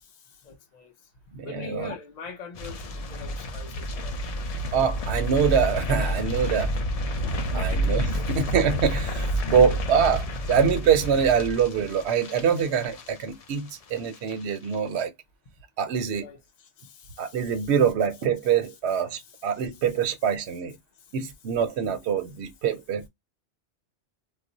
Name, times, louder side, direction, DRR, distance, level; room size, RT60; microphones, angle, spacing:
voice 1, 0.4-0.9 1.4-4.2 6.6-6.7 7.5-7.7 8.1-8.3 16.2-17.7, left 5 dB, 45° left, 0.7 m, -43 dB
voice 2, 1.3-1.9 4.7-6.7 7.5-15.1 15.8-16.3 17.2-20.8 21.1-23.1, right 7 dB, 70° right, 0.8 m, -24 dB
sound 1, 2.6-13.7 14.0-14.3 14.6-14.7, equal, 70° left, 0.3 m, -29 dB
2.4 x 2.1 x 3.7 m
omnidirectional pair, 1.2 m